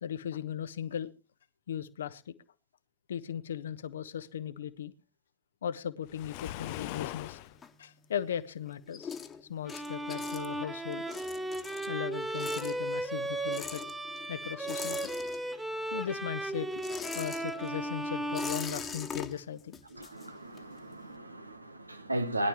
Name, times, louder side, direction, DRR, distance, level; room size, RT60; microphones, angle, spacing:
voice 1, 0.0-1.1 1.7-2.3 3.1-4.9 5.6-7.4 7.8-9.1 9.5-11.1 11.9-13.8 14.3-15.1 15.9-16.8 17.1-19.8, left 9 dB, 65° left, 0.9 m, -37 dB
Waves surf, 6.1-7.6, left 16 dB, 45° left, 0.5 m, -40 dB
sound 1, 7.4-8.3 8.6-15.8 16.1-20.8, left 6 dB, 20° left, 1.4 m, -43 dB
Bowed string instrument, 9.7-19.4, right 1 dB, 5° right, 1.1 m, -36 dB
voice 2, 19.9-22.5, right 1 dB, 85° right, 1.2 m, -35 dB
20.5 x 11.0 x 3.0 m
figure-of-eight pair, 90°, 0 cm